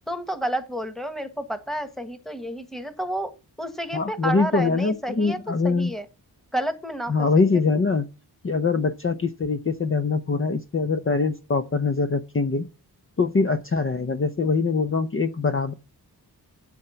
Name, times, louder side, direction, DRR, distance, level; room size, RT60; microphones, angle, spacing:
voice 1, 0.1-3.3 3.6-5.4 5.6-6.0 6.5-7.1, right 1 dB, ahead, 1.5 m, -30 dB
voice 2, 3.9-5.9 7.1-8.1 8.4-12.7 13.2-15.7, left 4 dB, 35° left, 0.7 m, -23 dB
9.0 x 7.2 x 5.8 m
wide cardioid pair, 95°, 39 cm